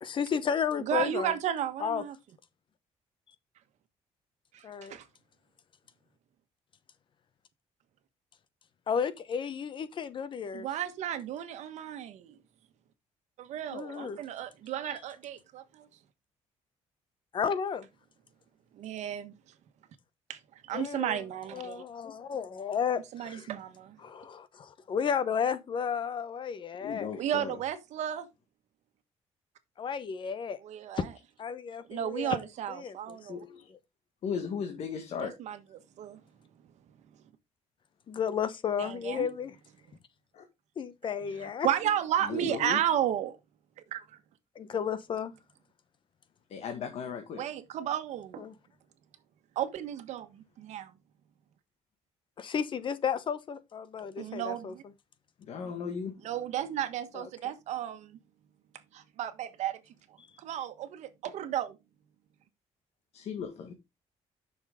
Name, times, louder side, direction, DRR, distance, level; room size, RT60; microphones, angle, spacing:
voice 1, 0.0-1.3 1.8-2.0 4.6-5.0 8.9-10.7 13.7-14.2 14.8-14.9 17.3-17.9 20.7-21.2 21.5-23.5 24.0-27.1 29.8-30.6 31.0-31.1 31.4-33.2 38.1-39.5 40.8-41.7 44.5-45.3 48.4-48.5 52.4-54.7 57.1-57.3, left 7 dB, 45° left, 0.9 m, -33 dB
voice 2, 0.8-2.1 4.5-5.0 10.5-12.4 13.4-15.9 18.7-19.3 20.3-20.4 20.7-21.8 23.1-24.0 27.2-28.3 30.6-31.1 31.9-33.4 35.2-35.6 36.0-36.2 38.8-39.3 41.4-43.3 43.9-44.2 47.4-48.5 49.5-50.9 54.2-54.8 56.2-58.2 58.9-59.8 60.4-61.8, right 10 dB, 75° right, 1.4 m, -33 dB
voice 3, 26.8-27.6 33.3-33.7 34.2-35.4 40.3-40.4 42.2-42.8 46.5-47.4 55.4-56.2 63.1-63.7, left 6 dB, 60° left, 1.7 m, -36 dB
9.9 x 6.4 x 3.7 m
cardioid pair, 135°, 12 cm